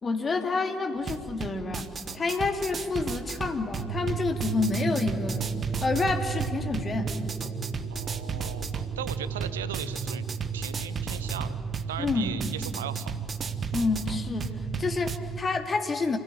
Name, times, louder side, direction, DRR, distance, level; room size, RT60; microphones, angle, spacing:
voice 1, 0.0-1.9 2.1-5.5 5.8-7.1 12.0-12.4 13.7-14.5 14.8-16.2, left 3 dB, 35° left, 4 dB, 2.5 m, -28 dB
sound 1, 1.0-15.2, right 5 dB, 40° right, 1.3 m, -36 dB
sound 2, 3.8-15.4, right 6 dB, 80° left, 4.3 m, -34 dB
voice 2, 7.9-10.2 10.5-11.6 11.9-13.1, right 10 dB, 80° right, 14 dB, 0.6 m, -38 dB
27.5 x 17.0 x 8.8 m, 2.1 s
figure-of-eight pair, 50°, 0 cm